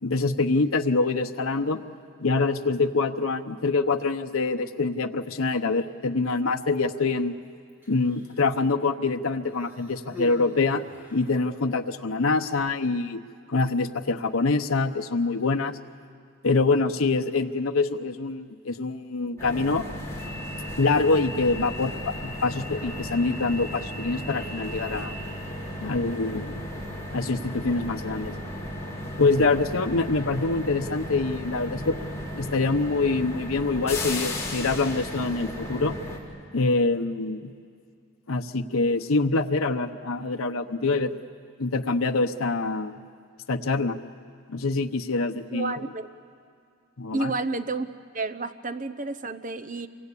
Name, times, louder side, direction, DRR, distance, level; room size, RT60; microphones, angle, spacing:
voice 1, 0.0-1.8 2.2-7.3 7.9-10.8 11.1-13.2 13.5-15.8 16.4-19.8 20.8-25.1 25.8-26.6 27.1-28.3 29.2-32.0 32.3-35.9 36.5-37.5 38.3-41.1 41.6-42.9 43.5-44.0 44.5-45.7 47.0-47.3, left 3 dB, 80° left, 5 dB, 0.9 m, -25 dB
Human voice, 7.7-8.6 9.5-11.4 12.3-12.5, left 2 dB, 10° right, 4.9 m, -43 dB
sound 1, 19.4-36.2, left 1 dB, 15° left, 3.6 m, -35 dB
voice 2, 45.5-46.1 47.1-47.9 48.1-49.9, right 3 dB, 40° right, 11 dB, 0.9 m, -30 dB
27.5 x 24.0 x 8.4 m, 2.2 s
head